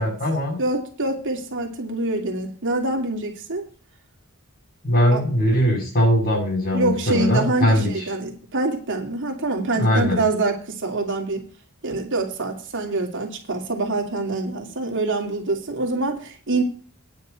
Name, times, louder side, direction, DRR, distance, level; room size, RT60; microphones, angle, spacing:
voice 1, 0.0-0.6 4.8-7.9 9.7-10.2, left 1 dB, 45° left, 7.6 m, -20 dB
voice 2, 0.6-3.7 5.1-5.2 6.7-11.5 11.8-16.6, right 2 dB, 60° right, 2.9 m, -25 dB
10.0 x 6.5 x 8.1 m
head